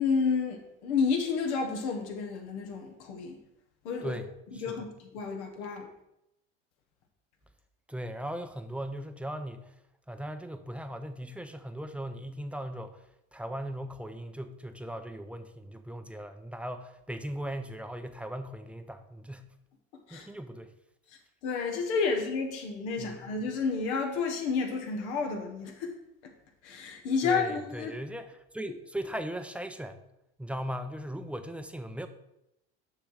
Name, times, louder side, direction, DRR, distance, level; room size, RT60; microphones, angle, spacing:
voice 1, 0.0-3.4 3.8-4.2 4.5-5.9 20.1-20.3 21.4-25.9 26.2-26.3 26.6-27.9, left 5 dB, 75° left, 3 dB, 1.5 m, -30 dB
voice 2, 4.5-4.8 7.9-9.7 10.1-13.0 13.3-19.5 20.1-20.7 23.0-23.4 27.2-30.0 30.4-32.1, right 1 dB, 5° right, 8 dB, 0.6 m, -38 dB
6.7 x 6.0 x 4.9 m, 0.85 s
hypercardioid pair, 90°, 34 cm